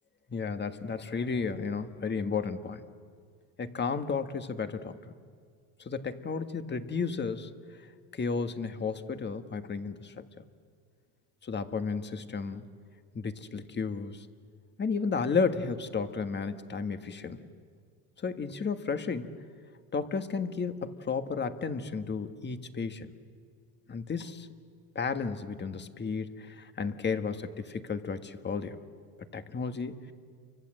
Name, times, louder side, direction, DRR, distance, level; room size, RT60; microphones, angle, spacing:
voice 1, 0.3-2.8 3.6-5.1 5.8-7.5 8.1-10.2 11.4-12.6 13.1-14.3 14.8-17.4 18.2-19.3 19.9-23.1 23.9-24.5 24.9-28.8 29.3-30.1, left 5 dB, 25° left, 9 dB, 1.6 m, -33 dB
29.5 x 24.5 x 7.7 m, 2.1 s
cardioid pair, 105°, 39 cm